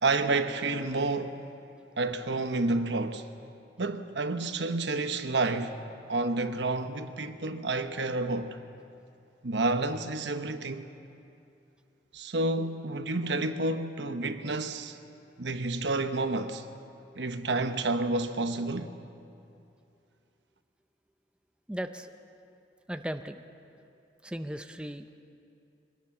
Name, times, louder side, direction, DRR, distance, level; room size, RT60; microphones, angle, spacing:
voice 1, 0.0-1.4 2.0-3.3 3.8-5.8 6.1-8.6 9.4-10.9 12.1-15.0 15.4-16.7 17.2-19.0, right 2 dB, 90° right, 1.1 m, -30 dB
voice 2, 21.7-22.1 22.9-23.4 24.2-25.1, equal, 5° right, 0.6 m, -36 dB
24.5 x 20.0 x 6.0 m
head